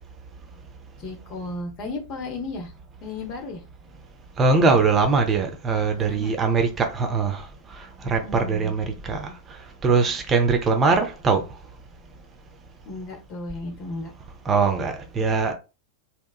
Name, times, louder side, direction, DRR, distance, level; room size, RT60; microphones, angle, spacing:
voice 1, 1.0-2.7 3.0-3.6 6.0-6.3 8.0-8.7 12.9-14.1, left 2 dB, 40° left, 0.8 m, -34 dB
voice 2, 4.4-11.4 14.5-15.5, right 4 dB, 25° right, 0.5 m, -22 dB
2.8 x 2.3 x 2.3 m
figure-of-eight pair, 90°, 0 cm